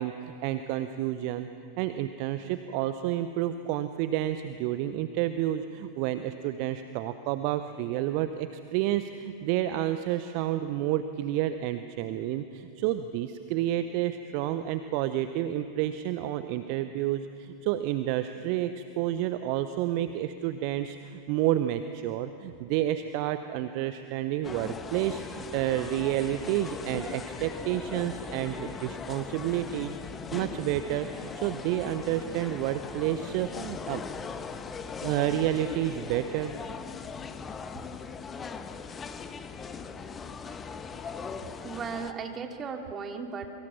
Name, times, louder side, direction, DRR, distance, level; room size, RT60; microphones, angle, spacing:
voice 1, 0.0-1.5 1.8-30.0 30.3-34.0 35.0-36.5, right 12 dB, 45° right, 11 dB, 0.8 m, -30 dB
sound 1, 24.4-42.1, left 5 dB, 20° left, 1.2 m, -39 dB
voice 2, 41.6-43.5, right 5 dB, 25° right, 4 dB, 2.5 m, -36 dB
28.5 x 24.0 x 6.0 m, 2.6 s
figure-of-eight pair, 90°, 0 cm